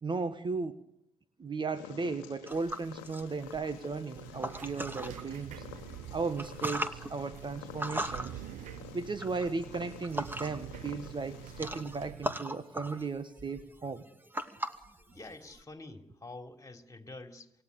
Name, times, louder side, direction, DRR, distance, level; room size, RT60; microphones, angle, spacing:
voice 1, 0.0-0.8 1.4-5.6 6.1-8.3 8.9-14.1, right 4 dB, 35° right, 12 dB, 1.7 m, -36 dB
Purr, 1.7-11.8, left 13 dB, 75° left, 1.2 m, -51 dB
sound 1, 2.5-5.2 5.7-10.8 11.0-15.6, right 1 dB, 15° right, 2.5 m, -39 dB
sound 2, 4.2-12.4, right 13 dB, 65° right, 0.9 m, -47 dB
voice 2, 15.1-17.5, left 2 dB, 25° left, 5 dB, 3.6 m, -47 dB
28.0 x 17.5 x 8.4 m, 0.82 s
hypercardioid pair, 40°, 14 cm